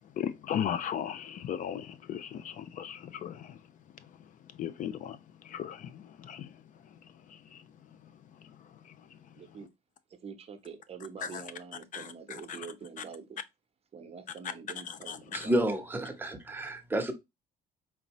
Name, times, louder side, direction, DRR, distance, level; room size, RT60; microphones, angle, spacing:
voice 1, 0.2-3.5 4.6-5.2 5.5-6.5 11.2-11.4 11.9-12.1 12.5-12.6 14.9-15.5, left 9 dB, 50° left, 0.4 m, -36 dB
voice 2, 9.4-9.7 10.2-13.4 13.9-15.8, right 6 dB, 35° right, 0.8 m, -46 dB
voice 3, 15.3-17.1, right 1 dB, 10° right, 0.9 m, -30 dB
4.5 x 2.7 x 2.9 m
cardioid pair, 110°, 17 cm